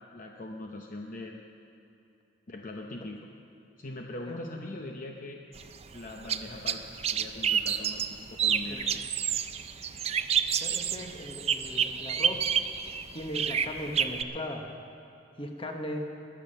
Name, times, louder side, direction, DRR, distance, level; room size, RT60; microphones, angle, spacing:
voice 1, 0.1-1.4 2.5-3.2 3.8-5.4 5.9-8.0 8.4-8.8, left 2 dB, 50° left, 1 dB, 0.8 m, -41 dB
sound 1, 5.6-14.2, right 7 dB, 35° right, 0.4 m, -29 dB
voice 2, 10.6-12.5 12.9-14.7 15.4-16.1, left 1 dB, 30° left, 3 dB, 1.2 m, -38 dB
21.0 x 7.4 x 6.7 m, 2.7 s
head